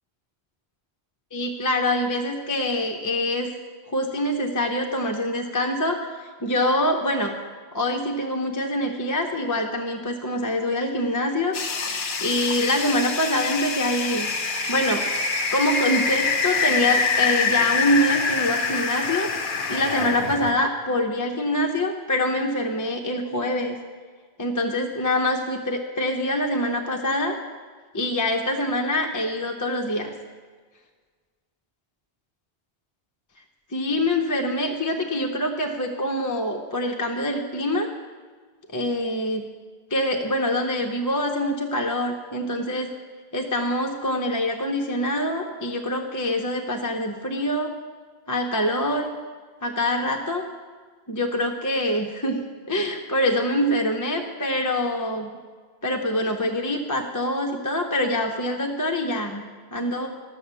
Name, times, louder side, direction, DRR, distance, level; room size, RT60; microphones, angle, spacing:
voice 1, 1.3-3.5 3.9-7.3 7.7-11.6 12.2-14.3 14.7-19.3 19.7-23.8 24.4-27.3 27.9-30.1 33.7-37.9 38.7-39.5 39.9-42.9 43.3-47.7 48.3-49.1 49.6-50.4 51.1-55.3 55.8-60.1, left 1 dB, 20° left, 2 dB, 0.7 m, -25 dB
sound 1, 11.5-20.5, left 5 dB, 55° left, 1.1 m, -25 dB
11.5 x 7.8 x 6.8 m, 1.5 s
omnidirectional pair, 1.1 m